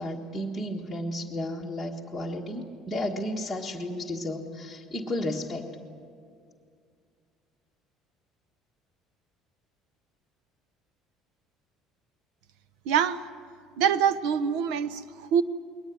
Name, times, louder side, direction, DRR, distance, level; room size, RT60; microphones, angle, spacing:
voice 1, 0.0-5.7, left 1 dB, ahead, -5 dB, 1.5 m, -33 dB
voice 2, 12.9-13.2 13.8-15.4, right 8 dB, 80° right, 14 dB, 0.9 m, -24 dB
21.5 x 19.0 x 9.4 m, 2.2 s
cardioid pair, 160°, 0 cm